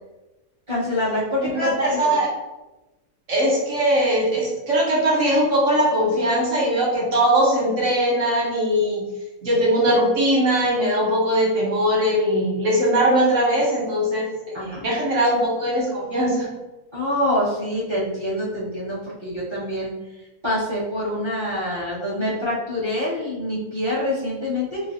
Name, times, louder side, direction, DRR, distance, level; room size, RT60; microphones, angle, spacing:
voice 1, 0.7-2.0 14.5-14.9 16.9-19.9 20.4-24.8, left 1 dB, 20° right, -9 dB, 1.0 m, -25 dB
voice 2, 1.4-2.3 3.3-9.1 9.4-16.5, right 1 dB, 60° right, -5 dB, 1.2 m, -20 dB
3.2 x 3.1 x 2.6 m, 1.0 s
omnidirectional pair, 1.6 m